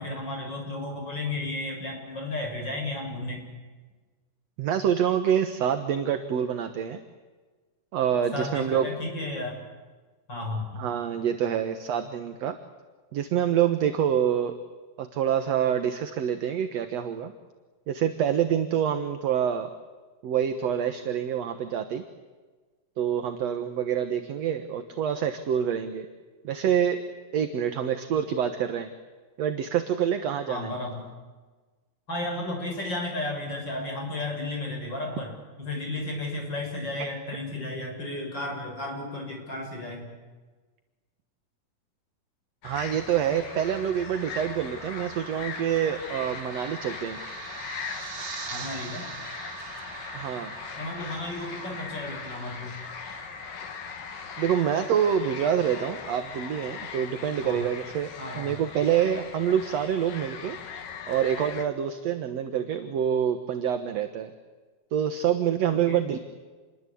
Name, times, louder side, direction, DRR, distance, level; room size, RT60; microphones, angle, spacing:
voice 1, 0.0-3.4 8.3-9.6 10.3-10.8 30.5-31.0 32.1-35.3 35.6-40.1 48.5-49.1 50.8-52.8 57.4-57.6 58.2-58.6 65.7-66.0, left 2 dB, 30° left, 2 dB, 7.3 m, -33 dB
voice 2, 4.6-7.0 7.9-8.9 10.8-12.6 13.1-14.5 15.0-17.3 17.9-19.7 20.2-22.0 23.0-26.1 26.4-27.0 27.3-28.9 29.4-30.8 37.0-37.1 42.6-47.2 50.1-50.5 54.4-60.6 61.1-64.3 64.9-66.2, right 9 dB, 60° right, 8 dB, 2.1 m, -26 dB
sound 1, 42.6-61.7, left 7 dB, 70° left, 3.6 m, -40 dB
sound 2, 43.4-58.8, right 3 dB, 30° right, 2.0 m, -43 dB
28.5 x 22.5 x 8.5 m, 1.3 s
omnidirectional pair, 4.0 m